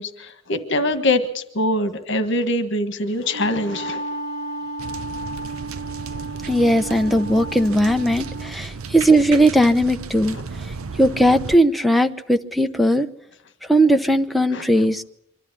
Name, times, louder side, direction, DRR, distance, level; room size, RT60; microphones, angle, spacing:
voice 1, 0.0-4.0 10.3-10.4 14.5-14.7, left 1 dB, 60° left, 9 dB, 1.6 m, -23 dB
Wind instrument woodwind instrument, 3.1-8.6, right 2 dB, 70° right, 3.2 m, -33 dB
sound 1, 4.8-11.6, right 4 dB, 85° right, 0.7 m, -34 dB
voice 2, 6.4-10.4 11.0-13.1 13.7-15.0, right 1 dB, ahead, 5 dB, 0.8 m, -18 dB
24.5 x 12.5 x 9.8 m, 0.76 s
head